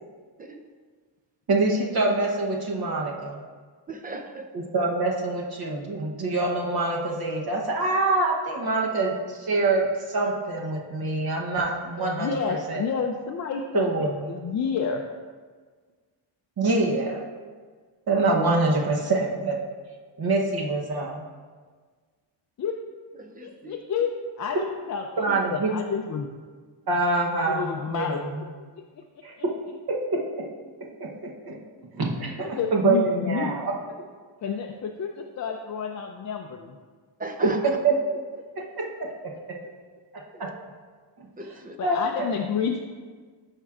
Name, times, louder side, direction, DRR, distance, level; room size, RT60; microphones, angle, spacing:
voice 1, 1.5-3.4 4.5-12.8 13.7-14.3 16.6-17.2 18.1-19.7 20.2-21.2 25.2-25.7 26.9-28.4 29.2-29.5 29.9-30.5 30.8-31.6 31.9-33.7 37.4-38.0 38.6-39.6 41.8-42.3, right 2 dB, 50° right, -1 dB, 1.0 m, -25 dB
voice 2, 3.9-4.5 23.2-23.8 37.2-37.6 40.3-40.5 41.4-41.8, right 2 dB, 20° right, 5 dB, 0.5 m, -38 dB
voice 3, 12.2-15.0 22.6-22.8 23.4-24.1 24.4-26.3 27.5-28.2 32.4-33.5 34.4-36.8 41.8-42.8, left 6 dB, 40° left, 2 dB, 0.4 m, -30 dB
12.0 x 4.5 x 2.4 m, 1.5 s
cardioid pair, 110°, 47 cm